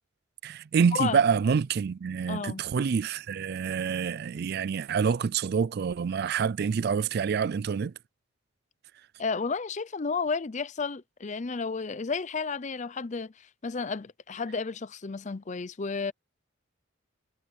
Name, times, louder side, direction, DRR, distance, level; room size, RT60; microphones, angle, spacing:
voice 1, 0.4-7.9, right 6 dB, 50° right, 0.3 m, -27 dB
voice 2, 2.3-2.6 9.2-16.1, left 4 dB, 35° left, 0.6 m, -32 dB
head